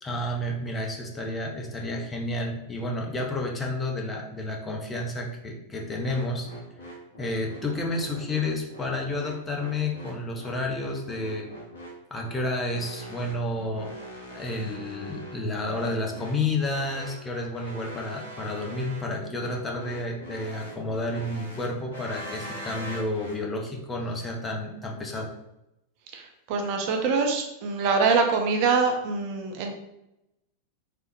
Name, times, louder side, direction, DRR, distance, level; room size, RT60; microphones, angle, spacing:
voice 1, 0.0-6.5 6.9-11.5 12.1-13.9 14.3-25.3, left 2 dB, 15° left, 0 dB, 0.5 m, -31 dB
sound 1, 6.1-23.4, equal, 65° left, 0.7 m, -42 dB
voice 2, 26.1-29.7, right 4 dB, 45° right, 3 dB, 0.5 m, -24 dB
3.2 x 2.1 x 2.9 m, 0.86 s
figure-of-eight pair, 90°, 0 cm